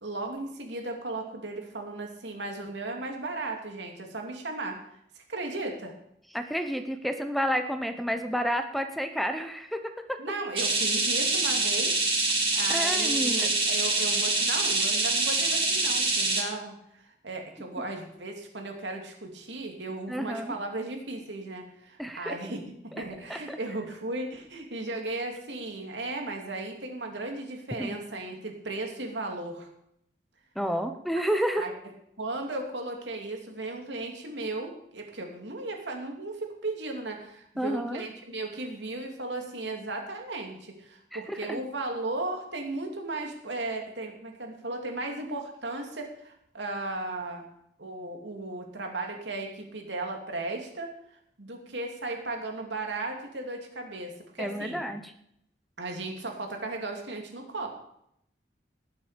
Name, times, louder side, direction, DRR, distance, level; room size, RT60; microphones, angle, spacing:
voice 1, 0.0-4.8 5.1-5.9 10.2-29.7 31.6-31.7 32.2-47.4 47.8-50.9 51.4-54.9 55.8-57.7, right 2 dB, 90° right, 2 dB, 2.8 m, -36 dB
voice 2, 6.3-10.2 12.7-13.5 20.1-20.5 22.0-22.5 22.9-23.0 23.3-23.6 27.8-28.0 30.6-31.7 37.6-38.0 41.1-41.6 54.4-55.1, equal, ahead, 7 dB, 0.8 m, -30 dB
sound 1, 10.6-16.4, right 3 dB, 30° right, 2.8 m, -25 dB
19.5 x 7.5 x 5.2 m, 0.74 s
head